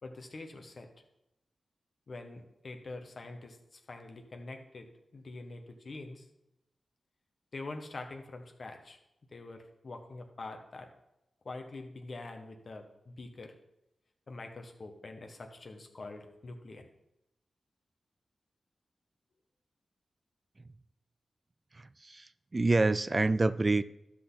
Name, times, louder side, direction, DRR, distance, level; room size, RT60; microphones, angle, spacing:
voice 1, 0.0-0.9 2.1-6.3 7.5-9.0 9.3-10.9 11.4-13.5 14.3-16.9, left 2 dB, 60° left, 4 dB, 1.5 m, -45 dB
voice 2, 21.7-23.8, right 2 dB, 40° right, 14 dB, 0.4 m, -27 dB
12.0 x 6.1 x 4.1 m, 0.88 s
cardioid pair, 55°, 0 cm